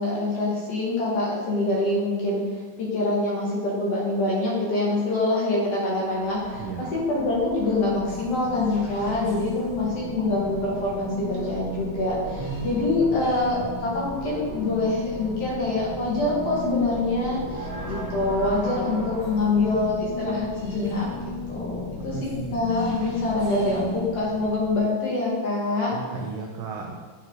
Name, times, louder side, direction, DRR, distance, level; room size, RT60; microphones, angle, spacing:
voice 1, 0.0-2.4 2.8-21.1 21.5-25.9, left 2 dB, 60° left, -4 dB, 2.3 m, -25 dB
sound 1, 5.9-24.8, left 2 dB, 25° left, 1.7 m, -35 dB
voice 2, 22.1-22.5 25.9-27.0, right 5 dB, 80° right, 0 dB, 1.4 m, -34 dB
9.4 x 4.5 x 3.7 m, 1.5 s
omnidirectional pair, 3.6 m